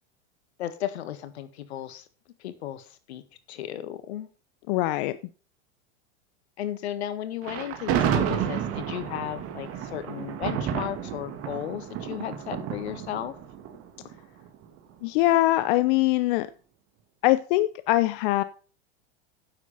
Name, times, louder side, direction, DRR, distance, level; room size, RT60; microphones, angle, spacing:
voice 1, 0.6-2.1 2.4-3.2 3.5-4.3 6.6-13.4, left 11 dB, 75° left, 12 dB, 1.6 m, -35 dB
voice 2, 4.7-5.2 15.0-16.5 17.2-18.4, left 17 dB, 55° left, 14 dB, 0.6 m, -22 dB
Thunder, 7.4-14.6, right 8 dB, 45° right, 2.0 m, -30 dB
9.7 x 7.6 x 5.5 m, 0.39 s
hypercardioid pair, 110°, 33 cm